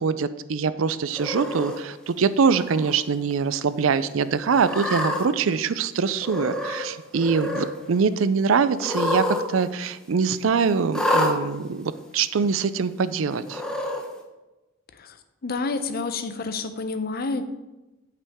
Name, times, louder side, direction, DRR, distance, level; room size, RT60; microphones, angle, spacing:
voice 1, 0.0-13.6, right 5 dB, 85° right, 15 dB, 0.5 m, -23 dB
Cat, 1.2-1.8 2.5-2.9 3.3-3.4 4.5-5.2 6.2-6.9 7.1-7.7 8.8-9.4 9.7-9.8 10.9-11.3 12.2-12.3 13.4-14.0, left 1 dB, 5° left, 1.0 m, -27 dB
voice 2, 15.4-17.4, left 3 dB, 50° left, 10 dB, 0.7 m, -29 dB
8.4 x 8.3 x 3.6 m, 1.1 s
head